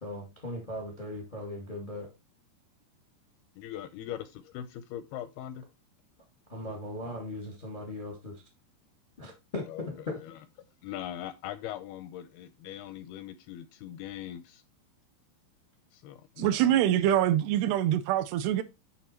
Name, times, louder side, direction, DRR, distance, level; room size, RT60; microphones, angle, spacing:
voice 1, 0.0-2.1 6.5-8.4 9.2-10.2, left 1 dB, 35° left, 0.7 m, -38 dB
voice 2, 3.6-5.7 9.7-9.8 10.1-10.4 10.8-14.6 15.9-16.8 17.1-17.2, left 11 dB, 85° left, 2.3 m, -41 dB
voice 3, 16.4-18.6, right 11 dB, 80° right, 2.5 m, -24 dB
11.0 x 3.7 x 4.3 m
omnidirectional pair, 4.9 m